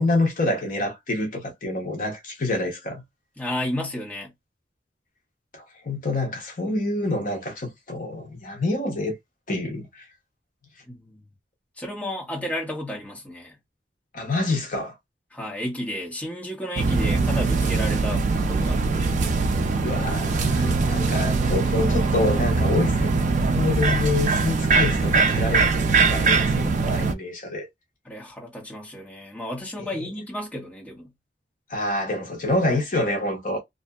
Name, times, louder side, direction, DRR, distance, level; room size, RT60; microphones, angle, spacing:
voice 1, 0.0-3.0 5.5-9.2 9.5-10.1 14.1-14.9 19.8-27.7 29.8-30.1 31.7-33.6, left 2 dB, 50° left, 0.8 m, -27 dB
voice 2, 3.4-4.3 10.9-11.2 11.8-13.6 15.3-19.2 23.9-24.1 28.0-31.1, left 1 dB, 10° left, 1.0 m, -32 dB
sound 1, 16.8-27.1, right 4 dB, 45° right, 0.4 m, -22 dB
2.6 x 2.4 x 2.3 m
head